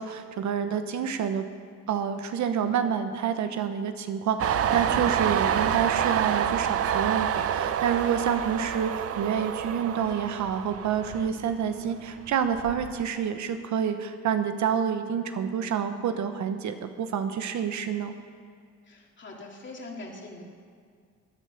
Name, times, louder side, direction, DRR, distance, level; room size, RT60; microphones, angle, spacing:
voice 1, 0.0-1.4 1.9-18.1, right 8 dB, 70° right, 9 dB, 1.0 m, -28 dB
Train, 4.4-11.8 12.2-13.0, right 9 dB, 50° right, 0.6 m, -28 dB
voice 2, 18.9-20.4, left 2 dB, 40° left, -1 dB, 2.9 m, -42 dB
16.5 x 9.5 x 5.8 m, 2.1 s
cardioid pair, 90°, 30 cm